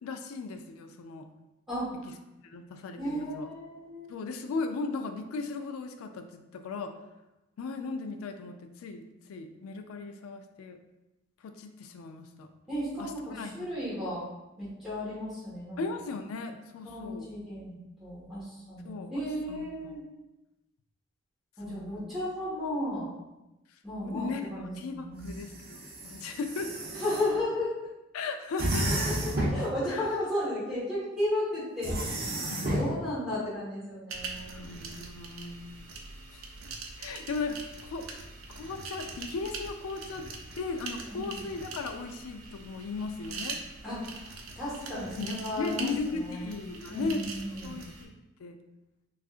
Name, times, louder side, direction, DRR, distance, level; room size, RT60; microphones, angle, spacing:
voice 1, 0.0-1.3 2.4-3.5 4.1-6.9 7.6-9.0 9.3-10.8 11.4-12.5 13.0-14.1 15.8-17.3 18.9-19.1 19.5-20.0 21.7-22.1 24.0-26.7 28.1-29.1 29.9-30.1 32.5-33.1 34.5-35.9 36.3-36.4 37.0-38.1 38.5-40.3 40.6-43.6 45.2-47.2 47.6-48.1 48.4-48.6, left 4 dB, 90° left, 7 dB, 0.3 m, -37 dB
voice 2, 3.0-4.1 12.7-14.3 14.6-15.8 16.8-20.0 21.6-23.1 23.8-25.4 26.9-27.7 28.9-34.7 41.1-41.4 43.8-46.6 46.9-47.8, left 1 dB, ahead, -10 dB, 1.2 m, -34 dB
sound 1, 25.2-27.3 28.6-29.7 31.8-32.9, right 1 dB, 45° right, 0.7 m, -31 dB
sound 2, 34.1-48.1, right 3 dB, 85° right, 0.5 m, -43 dB
3.6 x 2.4 x 2.4 m, 0.98 s
head